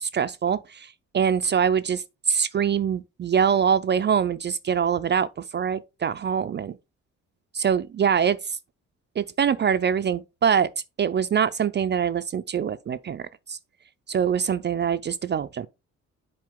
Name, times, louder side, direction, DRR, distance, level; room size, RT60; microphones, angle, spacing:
voice 1, 0.0-5.3 5.5-6.8 7.5-8.6 9.2-10.7 11.0-13.6 14.1-15.7, right 7 dB, 35° right, 0.4 m, -24 dB
7.5 x 4.3 x 3.6 m
cardioid pair, 90°, 30 cm